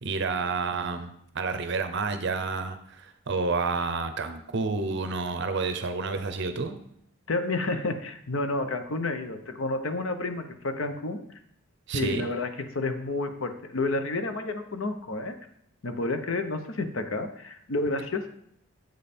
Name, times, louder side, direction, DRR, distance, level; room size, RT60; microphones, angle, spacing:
voice 1, 0.0-6.8 11.9-12.2, right 4 dB, 55° right, 8 dB, 0.6 m, -29 dB
voice 2, 7.3-11.4 11.9-15.4 15.8-18.3, left 2 dB, 65° left, 8 dB, 0.7 m, -30 dB
7.7 x 5.2 x 4.3 m, 0.71 s
head